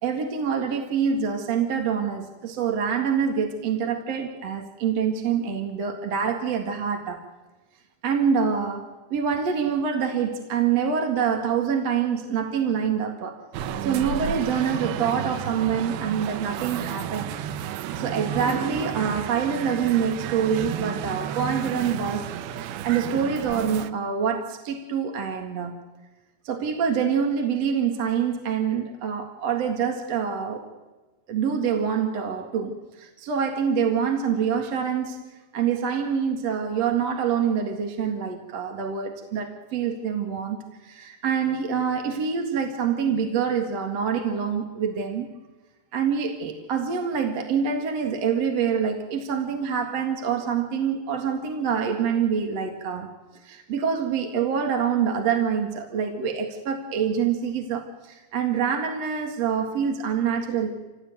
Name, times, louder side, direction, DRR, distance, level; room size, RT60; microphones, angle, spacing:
voice 1, 0.0-7.3 8.0-13.4 13.8-17.4 18.0-25.8 26.4-30.7 31.3-35.2 35.5-45.3 45.9-53.2 53.4-60.8, right 7 dB, 50° right, 3 dB, 2.7 m, -26 dB
sound 1, 13.5-23.9, right 9 dB, 80° right, 2.8 m, -32 dB
27.5 x 17.5 x 9.4 m, 1.2 s
omnidirectional pair, 4.3 m